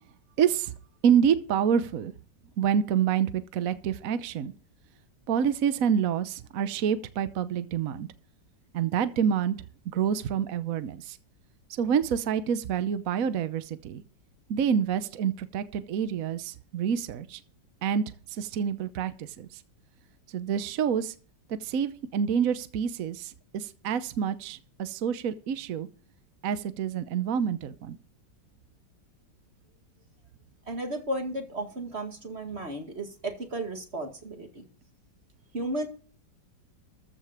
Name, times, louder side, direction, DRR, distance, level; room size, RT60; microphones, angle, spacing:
voice 1, 0.4-0.7 1.0-2.1 2.6-4.5 5.3-8.1 8.7-9.5 9.9-11.2 11.7-14.0 14.5-17.4 17.8-18.0 18.3-19.6 20.3-21.1 21.5-25.9 26.4-28.0, right 8 dB, 55° right, 1.1 m, -27 dB
voice 2, 30.7-34.7 35.5-35.9, right 1 dB, 35° right, 2.2 m, -34 dB
14.5 x 5.4 x 7.3 m
omnidirectional pair, 2.0 m